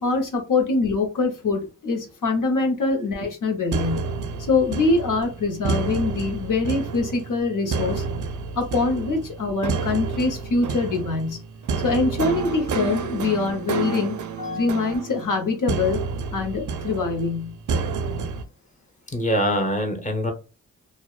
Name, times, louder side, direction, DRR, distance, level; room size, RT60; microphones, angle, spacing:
voice 1, 0.0-4.1 4.5-8.0 8.5-11.4 11.8-14.2 14.5-16.0 16.3-17.5, left 3 dB, 65° left, 0.8 m, -24 dB
sound 1, 3.7-18.4, right 5 dB, 60° right, 0.5 m, -30 dB
voice 2, 14.4-14.8 19.1-20.3, equal, 20° left, 0.9 m, -25 dB
2.8 x 2.1 x 2.3 m
cardioid pair, 40°, 34 cm